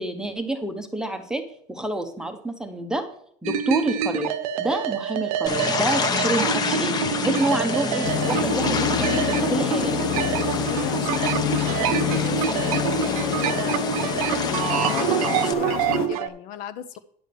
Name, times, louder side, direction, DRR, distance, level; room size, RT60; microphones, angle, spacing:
voice 1, 0.0-1.4 1.7-3.0 3.4-9.9, right 2 dB, 5° right, 0.8 m, -28 dB
sound 1, 3.5-16.3, right 9 dB, 85° right, 1.0 m, -27 dB
sound 2, 5.5-15.5, left 5 dB, 20° left, 0.9 m, -28 dB
sound 3, 8.0-16.1, left 8 dB, 90° left, 1.2 m, -28 dB
voice 2, 10.7-13.9 14.4-17.0, left 10 dB, 50° left, 0.7 m, -35 dB
10.5 x 4.9 x 6.8 m
supercardioid pair, 150°, 18 cm